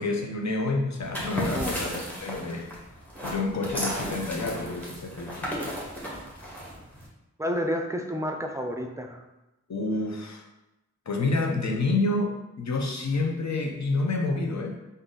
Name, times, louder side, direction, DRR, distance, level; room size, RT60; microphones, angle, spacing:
voice 1, 0.0-2.7 3.2-5.7 9.7-10.5 11.1-14.8, left 3 dB, 65° left, 2 dB, 0.7 m, -28 dB
sound 1, 1.0-7.1, equal, 5° left, 1.3 m, -34 dB
voice 2, 7.4-9.2, equal, 10° right, 3 dB, 0.5 m, -30 dB
3.9 x 2.6 x 3.7 m, 0.97 s
wide cardioid pair, 55°, 30 cm